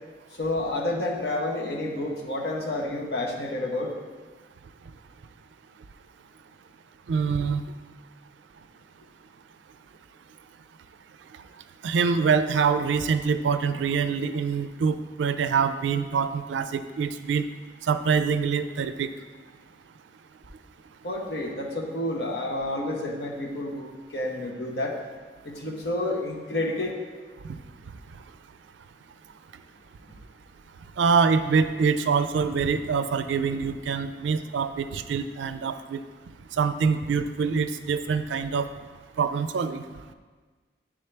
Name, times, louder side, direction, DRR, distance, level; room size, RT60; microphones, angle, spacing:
voice 1, 0.4-4.0 21.0-25.0 25.4-27.0, left 1 dB, 70° left, 0 dB, 0.9 m, -30 dB
voice 2, 7.1-7.6 11.8-17.5 17.8-19.1 27.4-27.6 31.0-36.0 36.5-38.7 39.2-39.8, right 5 dB, 90° right, 11 dB, 0.3 m, -25 dB
9.6 x 3.6 x 3.3 m, 1.4 s
head